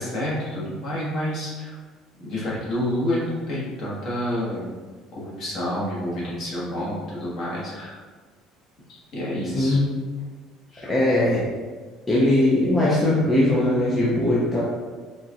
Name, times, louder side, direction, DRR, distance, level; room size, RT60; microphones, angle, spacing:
voice 1, 0.0-1.8 2.2-4.7 5.1-8.0 8.9-9.8 10.7-10.9, left 1 dB, 45° left, -7 dB, 1.3 m, -29 dB
voice 2, 10.9-11.5 12.1-14.6, left 1 dB, 15° left, -7 dB, 0.5 m, -20 dB
4.3 x 2.9 x 2.4 m, 1.5 s
cardioid pair, 170°, 0 cm